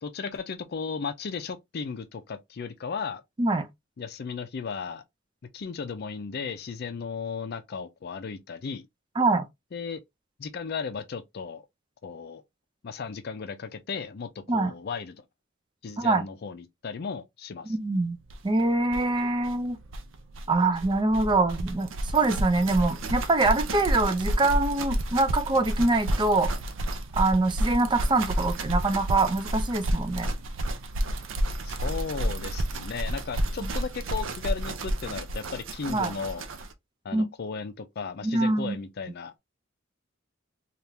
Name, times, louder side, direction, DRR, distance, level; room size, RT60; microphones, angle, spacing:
voice 1, 0.0-3.2 4.0-5.0 5.5-8.8 9.7-10.0 10.4-11.6 12.0-12.4 12.8-15.2 15.8-17.7 31.6-36.5 37.0-39.3, left 5 dB, 55° left, 0.4 m, -35 dB
voice 2, 3.4-3.7 9.2-9.5 14.5-14.7 16.0-16.2 17.7-18.2 18.4-19.8 20.5-26.5 27.1-30.3 35.9-36.1 37.1-37.2 38.2-38.8, right 2 dB, 25° right, 0.5 m, -24 dB
sound 1, 18.3-18.4 18.6-18.7 18.9-36.7, right 1 dB, 70° right, 0.5 m, -30 dB
3.4 x 2.4 x 2.7 m
head